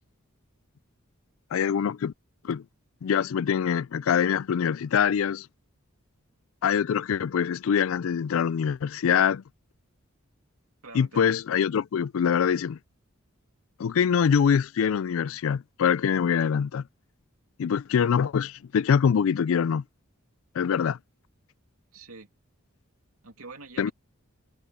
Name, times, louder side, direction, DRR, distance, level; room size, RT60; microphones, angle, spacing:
voice 1, 1.5-2.1 2.4-2.6 3.0-5.5 6.6-9.4 10.9-12.8 13.8-16.8 17.6-19.8 20.6-21.0 23.8-23.9, left 7 dB, 70° left, 0.3 m, -24 dB
voice 2, 10.8-11.3 21.9-22.3 23.2-23.9, right 3 dB, 85° right, 2.8 m, -45 dB
head